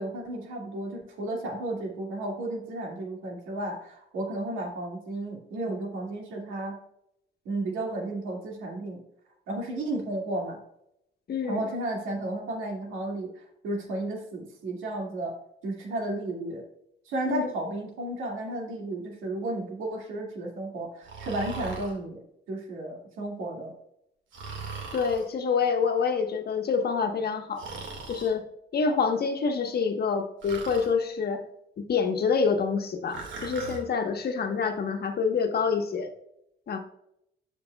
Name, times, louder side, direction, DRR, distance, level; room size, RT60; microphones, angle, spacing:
voice 1, 0.0-6.8 7.5-9.0 9.5-10.6 11.4-15.4 15.6-16.6 17.1-23.7, right 1 dB, 90° right, 0 dB, 2.1 m, -33 dB
voice 2, 11.3-11.6 17.3-17.5 24.9-27.6 28.1-28.4 28.7-31.4 31.8-36.1 36.7-36.8, left 5 dB, 55° left, 5 dB, 1.2 m, -27 dB
Breathing, 21.0-22.0 24.3-25.3 27.6-28.3 30.4-30.9 33.1-33.8, right 4 dB, 70° right, 1.9 m, -39 dB
12.5 x 5.1 x 2.3 m, 0.76 s
cardioid pair, 90°, 20 cm